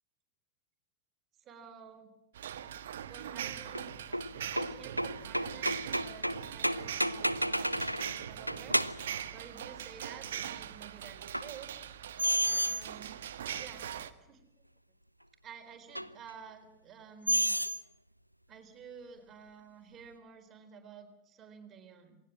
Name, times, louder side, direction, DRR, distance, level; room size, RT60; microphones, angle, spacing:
voice 1, 1.4-2.1 3.1-4.2 4.5-11.7 12.4-13.2 13.5-13.9 14.2-14.4 15.4-17.5 18.5-22.2, right 7 dB, 30° right, 6 dB, 3.9 m, -51 dB
sound 1, 2.3-14.1, right 10 dB, 60° right, 1.4 m, -41 dB
sound 2, 3.7-8.2 8.5-9.1 11.3-11.5 12.2-12.8 13.6-13.7 16.0-16.1 17.3-17.8, equal, 90° right, 0.8 m, -31 dB
27.5 x 19.0 x 7.6 m, 0.87 s
figure-of-eight pair, 90°, 0 cm